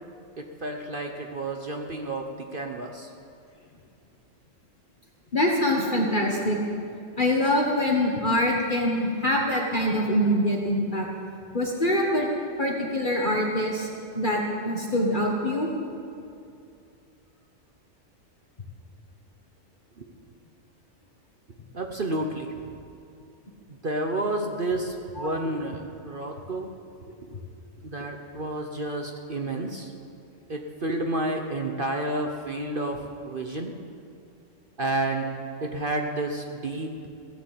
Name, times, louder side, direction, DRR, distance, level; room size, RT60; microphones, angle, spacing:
voice 1, 0.4-3.1 20.0-20.1 21.7-22.7 23.7-26.7 27.2-27.3 27.8-29.9 30.5-33.7 34.8-35.3 35.6-36.9, right 2 dB, 45° right, 3 dB, 1.1 m, -30 dB
voice 2, 5.3-6.6 7.2-11.1 11.5-12.3 12.6-13.9 14.1-15.7 25.2-25.3, left 1 dB, 40° left, -1 dB, 1.6 m, -24 dB
16.0 x 11.0 x 7.8 m, 2.6 s
omnidirectional pair, 1.4 m